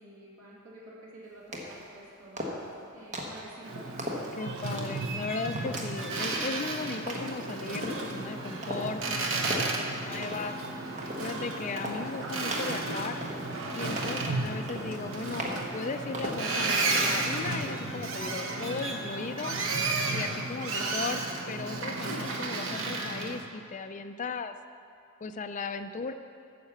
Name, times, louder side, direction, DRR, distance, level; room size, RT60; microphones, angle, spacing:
voice 1, 0.0-2.6 2.9-4.1, right 1 dB, 85° right, -5 dB, 2.6 m, -49 dB
sound 1, 1.5-1.9 2.4-2.7 3.1-3.5 4.0-4.3 4.8-5.1 5.6-5.9 6.2-6.5 7.1-7.4 7.8-8.1 8.6-8.9 9.4-9.7 10.2-10.6 11.0-11.3 11.8-12.0 12.5-12.8 13.2-13.6 14.0-14.2 14.7-15.0 15.4-15.7 16.1-16.5 16.9-17.1, equal, 35° right, 1.3 m, -37 dB
Boat Water vehicle, 3.6-23.4, right 3 dB, 65° right, 1.1 m, -33 dB
voice 2, 4.4-10.5 11.2-13.2 13.7-19.6 20.1-21.2 21.5-24.5 25.2-26.1, left 4 dB, 35° left, 9 dB, 0.4 m, -37 dB
sound 2, 7.8-18.9, left 1 dB, 15° right, 0.9 m, -48 dB
9.5 x 6.5 x 7.1 m, 2.4 s
head